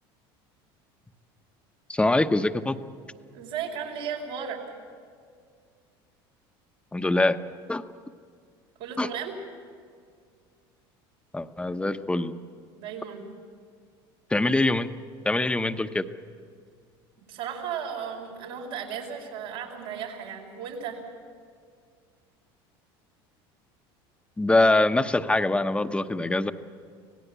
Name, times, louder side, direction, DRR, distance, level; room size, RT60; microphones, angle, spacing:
voice 1, 1.9-2.8 6.9-7.4 7.7-7.8 9.0-9.1 11.3-12.3 14.3-14.9 15.2-16.0 24.4-26.5, left 2 dB, 10° left, 9 dB, 0.9 m, -23 dB
voice 2, 3.3-4.6 8.8-9.3 12.8-13.3 17.3-21.0, right 7 dB, 85° right, -2 dB, 5.0 m, -35 dB
26.0 x 17.5 x 8.2 m, 2.1 s
supercardioid pair, 110°, 12 cm